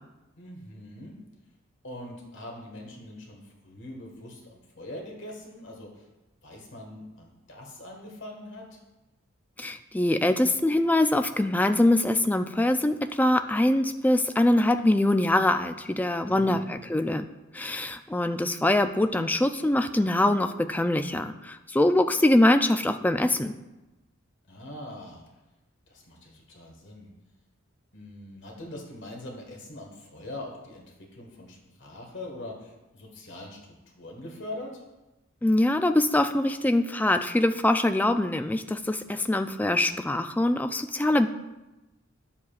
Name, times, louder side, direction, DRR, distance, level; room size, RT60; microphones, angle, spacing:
voice 1, 0.4-1.2 1.8-6.1 6.4-8.8 16.3-16.7 24.5-25.2 25.9-27.1 27.9-33.6 33.9-34.7, left 1 dB, 60° left, 0 dB, 1.6 m, -42 dB
voice 2, 9.6-17.3 17.5-23.5 35.4-41.3, left 1 dB, 10° left, 8 dB, 0.3 m, -23 dB
11.0 x 7.3 x 2.4 m, 1.0 s
head